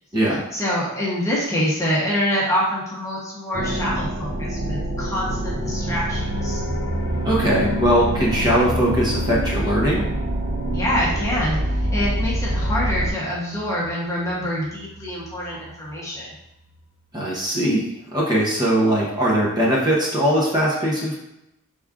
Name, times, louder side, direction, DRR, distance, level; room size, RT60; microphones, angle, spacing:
voice 1, 0.5-6.6 10.7-11.6 11.9-16.3, equal, 15° left, -5 dB, 0.9 m, -25 dB
sound 1, 3.5-13.1, right 1 dB, 40° right, 0.6 m, -26 dB
sound 2, 5.3-15.9 16.2-16.3 16.7-16.8, equal, 60° left, 0.7 m, -34 dB
voice 2, 7.2-10.0 17.1-17.8 18.1-21.1, right 1 dB, 20° right, -5 dB, 0.9 m, -20 dB
5.0 x 3.6 x 2.4 m, 0.85 s
head